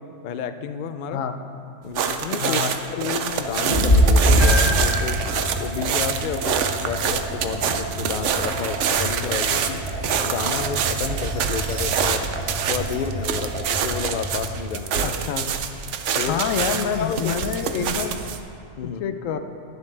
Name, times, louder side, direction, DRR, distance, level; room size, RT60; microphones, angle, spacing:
voice 1, 0.2-1.2 1.8-2.6 2.9-5.2 5.6-9.8 10.2-12.4 12.7-15.1 16.1-16.4 17.0-17.3 18.8-19.0, left 7 dB, 60° left, 10 dB, 0.5 m, -30 dB
sound 1, 1.9-18.4, right 7 dB, 70° right, 1.0 m, -26 dB
voice 2, 2.4-2.7 15.0-15.5 16.2-18.1 18.8-19.4, left 8 dB, 90° left, 8 dB, 1.1 m, -27 dB
sound 2, 3.4-14.4, right 1 dB, 5° left, 2.5 m, -32 dB
Meow, 3.7-13.3, equal, 40° left, 2.4 m, -25 dB
21.0 x 7.4 x 3.3 m, 2.6 s
omnidirectional pair, 1.3 m